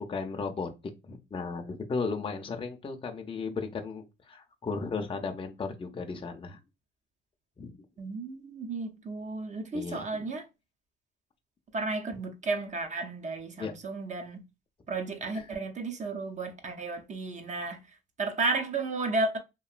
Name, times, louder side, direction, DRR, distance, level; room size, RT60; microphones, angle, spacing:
voice 1, 0.1-0.7 1.1-6.6 7.6-7.8 9.7-10.0 13.6-13.7, left 4 dB, 25° left, 0.6 m, -35 dB
voice 2, 8.0-10.5 11.7-14.4 14.9-17.8 18.2-19.4, right 3 dB, 35° right, 0.7 m, -33 dB
3.0 x 2.6 x 2.4 m
cardioid pair, 90°, 20 cm